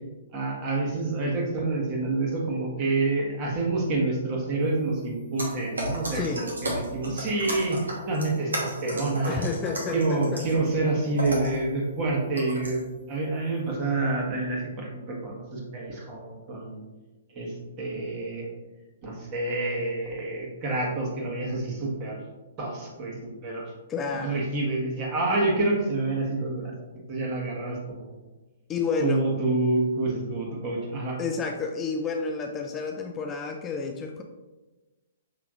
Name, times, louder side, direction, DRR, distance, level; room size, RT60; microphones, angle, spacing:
voice 1, 0.3-9.4 9.9-12.8 13.1-16.8 17.3-18.5 19.0-22.2 22.6-23.1 23.4-23.6 24.1-26.7 27.1-28.1 29.0-31.2, right 2 dB, 35° right, -2 dB, 1.3 m, -28 dB
sound 1, 5.4-10.7 11.2-11.6 12.4-12.8, right 1 dB, 85° right, 1.2 m, -34 dB
voice 2, 6.1-6.4 9.3-10.4 23.9-24.4 28.7-29.2 31.2-34.2, left 5 dB, 20° left, 3 dB, 0.3 m, -30 dB
5.8 x 3.3 x 2.5 m, 1.2 s
hypercardioid pair, 125°, 0 cm